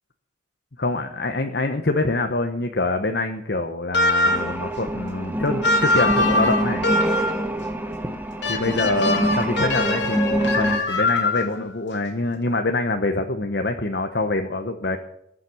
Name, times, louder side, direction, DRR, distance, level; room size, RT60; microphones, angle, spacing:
voice 1, 0.8-6.8 8.5-15.0, left 2 dB, 60° left, 5 dB, 1.0 m, -25 dB
sound 1, 3.9-4.6 5.6-7.5 8.4-11.6, left 2 dB, 75° left, 2.5 m, -22 dB
sound 2, 4.2-10.8, right 1 dB, 10° right, 1.1 m, -26 dB
19.5 x 7.4 x 7.1 m, 0.79 s
head